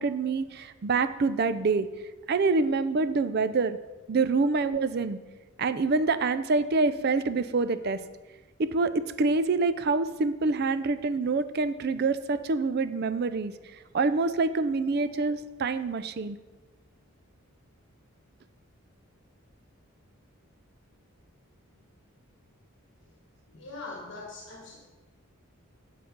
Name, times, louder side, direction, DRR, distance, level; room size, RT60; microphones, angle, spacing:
voice 1, 0.0-1.9 2.3-3.8 4.1-5.2 5.6-8.0 8.6-13.5 13.9-16.4, right 3 dB, 45° right, 13 dB, 0.4 m, -26 dB
voice 2, 23.5-24.8, left 3 dB, 55° left, -1 dB, 1.3 m, -42 dB
7.8 x 7.0 x 5.2 m, 1.2 s
head